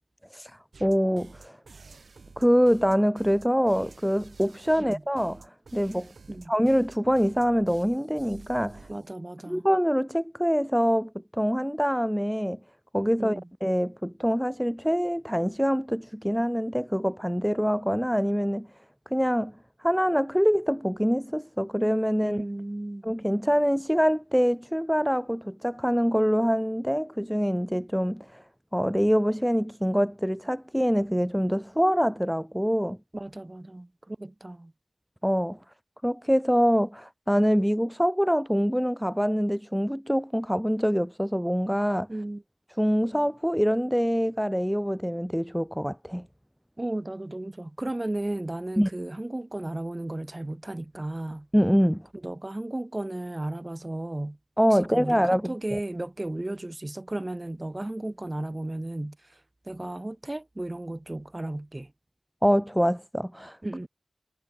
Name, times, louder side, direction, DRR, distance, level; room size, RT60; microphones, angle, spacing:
voice 1, 0.3-1.6 2.4-6.1 6.5-8.9 9.5-12.6 12.9-18.7 19.1-22.4 23.0-28.4 28.7-33.0 35.2-35.6 36.0-42.1 42.8-46.3 48.8-48.9 51.5-52.0 54.6-55.8 62.4-63.6, equal, ahead, 0.6 m, -25 dB
sound 1, 0.7-9.1, right 4 dB, 85° right, 7.3 m, -50 dB
voice 2, 8.9-9.6 13.2-13.4 22.2-23.1 33.1-34.7 42.1-42.4 46.8-51.5 52.2-54.4 54.7-55.2 55.4-59.2 59.7-61.9 63.6-63.9, right 1 dB, 30° right, 2.9 m, -34 dB
wide cardioid pair, 55°, 0 cm